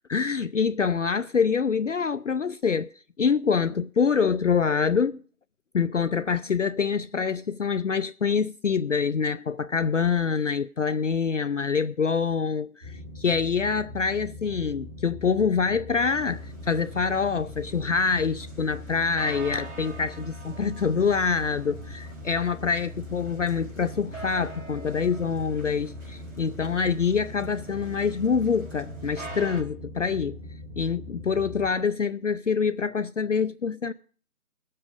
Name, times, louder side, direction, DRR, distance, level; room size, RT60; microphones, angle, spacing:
voice 1, 0.1-2.9 3.2-5.2 5.7-30.4 30.8-33.9, left 6 dB, 60° left, 0.5 m, -25 dB
sound 1, 12.8-31.7, left 1 dB, 40° right, 4.5 m, -41 dB
sound 2, 16.0-29.6, right 2 dB, 60° right, 4.5 m, -45 dB
19.5 x 7.6 x 4.9 m
figure-of-eight pair, 170°, 44 cm